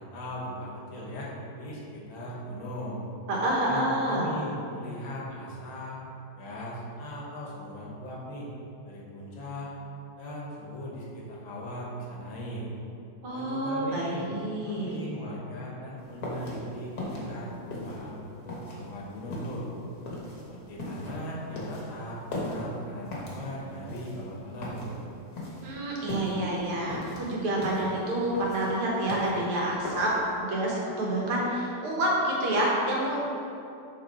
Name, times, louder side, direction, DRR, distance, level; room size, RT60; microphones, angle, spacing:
voice 1, 0.0-3.0 3.6-6.0 6.3-8.5 8.9-9.7 10.2-12.7 13.3-14.3 14.7-19.7 20.5-24.9, equal, 70° left, -4 dB, 2.1 m, -39 dB
voice 2, 3.3-4.3 13.2-14.9 25.6-30.1 30.4-33.3, right 1 dB, 80° right, -4 dB, 2.2 m, -28 dB
sound 1, 16.0-30.4, left 1 dB, 55° left, 1.7 m, -38 dB
6.4 x 5.2 x 4.3 m, 2.7 s
omnidirectional pair, 2.4 m